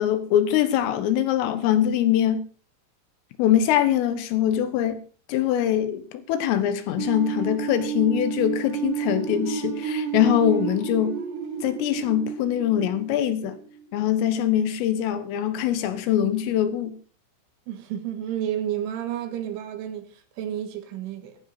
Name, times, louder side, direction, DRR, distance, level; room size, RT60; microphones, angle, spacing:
voice 1, 0.0-2.4 3.4-5.0 5.3-11.2 11.6-13.6 13.9-17.0, left 10 dB, 80° left, 3.9 m, -23 dB
sound 1, 7.0-13.8, right 7 dB, 90° right, 5.5 m, -31 dB
voice 2, 17.7-21.4, right 10 dB, 70° right, 4.0 m, -31 dB
15.0 x 14.0 x 4.2 m
omnidirectional pair, 5.9 m